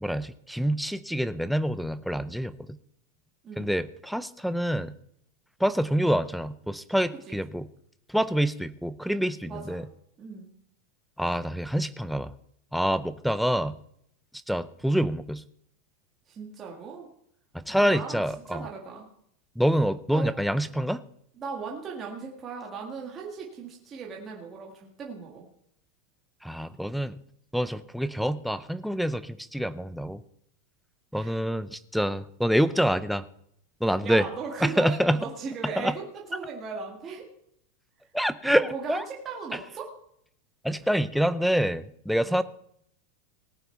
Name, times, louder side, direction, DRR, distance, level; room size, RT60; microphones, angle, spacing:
voice 1, 0.0-2.8 3.6-5.0 5.6-7.7 8.1-9.9 11.2-12.3 12.7-13.8 14.5-15.4 17.5-18.6 19.6-21.0 26.4-27.2 27.5-30.2 31.1-33.2 33.8-34.2 34.6-35.2 35.8-35.9 38.1-39.0 40.6-42.4, equal, ahead, 12 dB, 0.4 m, -26 dB
voice 2, 3.4-3.8 7.3-7.4 9.5-9.8 10.2-10.5 16.3-17.1 17.7-19.1 20.1-20.4 21.4-25.5 31.1-31.5 34.0-37.3 38.4-39.9 42.2-42.4, right 5 dB, 20° right, -1 dB, 1.8 m, -38 dB
18.5 x 8.8 x 4.5 m, 0.72 s
supercardioid pair, 170°, 0 cm